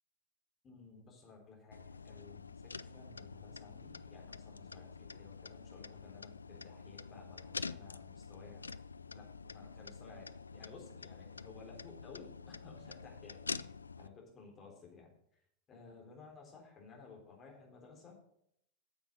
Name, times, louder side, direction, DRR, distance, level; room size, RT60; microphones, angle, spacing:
voice 1, 0.6-8.7 9.0-13.7 14.0-15.1 15.7-18.2, left 4 dB, 25° left, 0 dB, 3.6 m, -56 dB
sound 1, 1.7-14.1, left 4 dB, 75° left, 0.3 m, -47 dB
9.0 x 7.1 x 6.2 m, 0.72 s
figure-of-eight pair, 90°, 0 cm